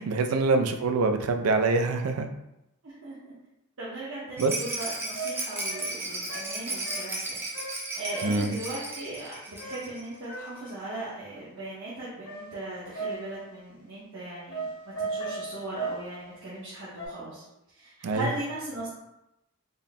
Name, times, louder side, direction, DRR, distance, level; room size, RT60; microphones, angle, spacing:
voice 1, 0.0-2.3 4.4-4.5 8.2-8.5 18.0-18.3, right 3 dB, 80° right, 7 dB, 0.4 m, -25 dB
voice 2, 2.8-3.3 3.8-7.6 7.9-14.7 15.0-17.4 17.7-18.9, right 1 dB, 60° right, -9 dB, 0.9 m, -38 dB
Rattle, 4.4-10.1 10.3-10.4 10.7-10.8, right 2 dB, 10° right, 0.4 m, -35 dB
sound 1, 4.8-4.9 5.1-7.2 7.5-7.9 8.1-8.5 9.6-10.6 12.3-13.5 14.5-16.1 17.0-17.1, right 3 dB, 65° left, 1.4 m, -37 dB
4.2 x 2.1 x 3.5 m, 0.88 s
head